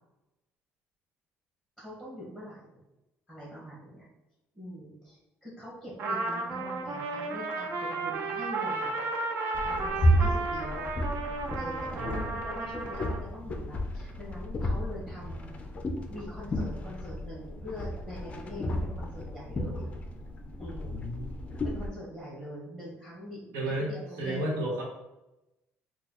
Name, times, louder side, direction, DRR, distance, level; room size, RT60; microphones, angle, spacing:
voice 1, 1.8-2.8 3.3-4.1 4.5-8.9 9.6-10.9 11.6-15.5 16.1-19.9 20.6-21.0 21.6-24.4, equal, 10° right, -7 dB, 1.2 m, -43 dB
Trumpet, 6.0-13.2, right 3 dB, 55° right, 0.5 m, -33 dB
sound 1, 9.5-21.9, equal, 30° left, 0.4 m, -32 dB
voice 2, 12.0-12.3 20.9-21.3 23.5-23.9 24.2-24.8, right 1 dB, 90° right, -3 dB, 1.3 m, -32 dB
3.9 x 2.3 x 2.9 m, 0.95 s
cardioid pair, 135°, 5 cm